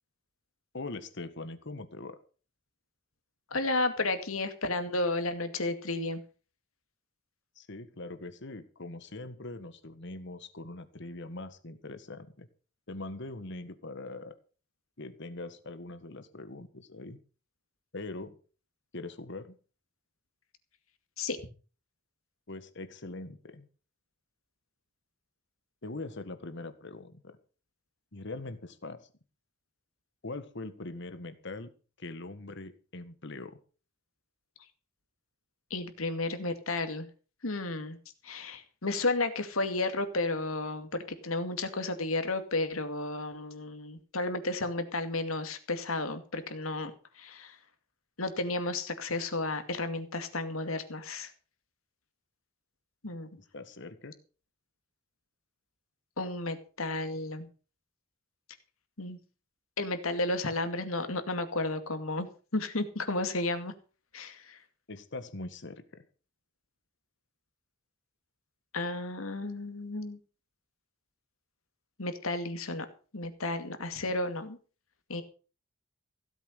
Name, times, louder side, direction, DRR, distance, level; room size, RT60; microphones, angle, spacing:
voice 1, 0.7-2.2 7.6-12.5 12.9-14.3 15.0-17.2 17.9-18.4 18.9-19.6 22.5-23.7 25.8-27.4 28.1-29.0 30.2-31.7 32.0-33.6 53.4-54.2 64.9-66.0, left 2 dB, 60° left, 12 dB, 1.5 m, -42 dB
voice 2, 3.5-6.2 21.2-21.4 35.7-37.1 37.4-38.0 38.2-46.9 47.2-47.6 48.2-51.3 53.0-53.3 56.2-57.5 59.0-59.2 59.8-63.7 64.1-64.6 68.7-70.2 72.0-72.9 73.1-74.6 75.1-75.2, left 2 dB, 80° left, 9 dB, 2.2 m, -32 dB
16.5 x 8.2 x 6.6 m, 0.38 s
head